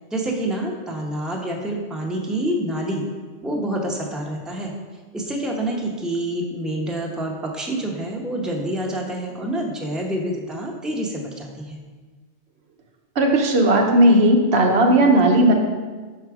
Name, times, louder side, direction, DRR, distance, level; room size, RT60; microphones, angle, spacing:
voice 1, 0.1-3.1 3.4-4.7 5.1-11.8, right 1 dB, ahead, 0 dB, 0.7 m, -27 dB
voice 2, 13.2-15.5, right 1 dB, 90° right, 2 dB, 1.1 m, -15 dB
5.8 x 4.7 x 4.8 m, 1.4 s
omnidirectional pair, 1.0 m